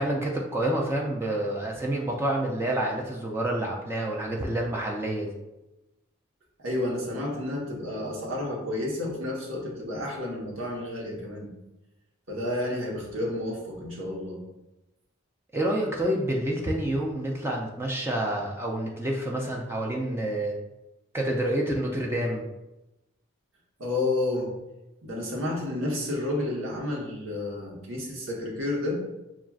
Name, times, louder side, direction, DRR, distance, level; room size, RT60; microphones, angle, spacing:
voice 1, 0.0-5.3 15.5-20.6 21.1-22.4, right 1 dB, 10° right, -1 dB, 0.3 m, -28 dB
voice 2, 6.6-11.5 12.3-14.4 23.8-24.5 25.0-29.0, left 2 dB, 85° right, -2 dB, 1.0 m, -30 dB
5.9 x 2.4 x 2.3 m, 0.98 s
head